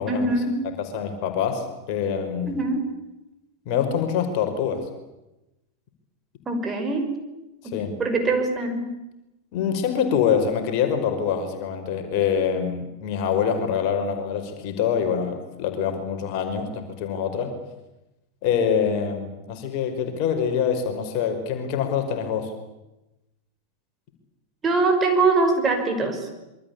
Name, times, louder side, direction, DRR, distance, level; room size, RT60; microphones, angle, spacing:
voice 1, 0.1-0.6 2.5-2.9 6.5-7.1 7.6-8.9 24.6-26.3, right 3 dB, 20° right, 5 dB, 5.8 m, -23 dB
voice 2, 0.8-2.6 3.7-4.8 7.7-7.9 9.5-17.5 18.4-22.5, left 7 dB, 45° left, 6 dB, 5.4 m, -25 dB
27.0 x 24.5 x 8.6 m, 0.95 s
figure-of-eight pair, 90°, 0 cm